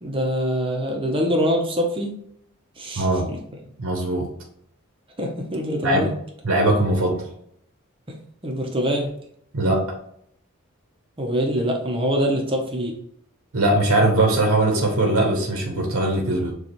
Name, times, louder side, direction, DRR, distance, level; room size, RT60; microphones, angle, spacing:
voice 1, 0.0-2.2 2.8-3.4 5.2-6.1 8.1-8.2 8.4-9.2 11.2-13.0, equal, 25° right, 1 dB, 0.7 m, -24 dB
voice 2, 3.0-3.3 3.8-4.3 5.8-6.1 6.4-7.3 9.5-9.9 13.5-16.5, right 1 dB, 70° right, 0 dB, 0.8 m, -20 dB
6.6 x 2.4 x 3.0 m, 0.68 s
head